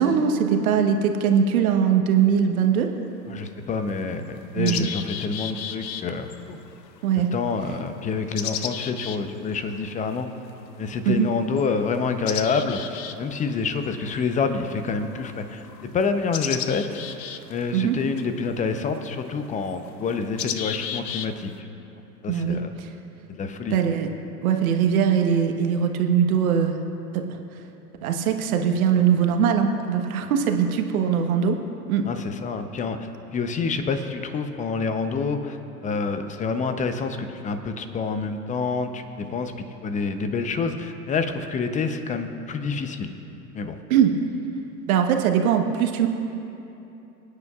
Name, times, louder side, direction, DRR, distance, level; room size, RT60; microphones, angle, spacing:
voice 1, 0.0-2.9 4.5-4.9 7.0-7.3 11.0-11.3 17.7-17.9 22.3-22.9 23.7-24.1 24.4-26.8 27.1-27.4 28.0-31.6 31.9-32.1 43.9-44.2 44.9-46.1, right 7 dB, 55° right, 4 dB, 1.3 m, -21 dB
sound 1, 2.4-2.5 3.4-3.5 3.9-21.6, left 9 dB, 80° left, 0.7 m, -37 dB
voice 2, 3.3-6.6 7.3-10.3 10.8-17.0 17.5-21.5 22.2-22.7 23.3-23.8 32.0-35.6 35.8-39.5 39.8-43.1 43.5-43.8, left 4 dB, 15° left, 8 dB, 0.7 m, -27 dB
29.0 x 9.7 x 2.4 m, 2.9 s
hypercardioid pair, 100°, 50 cm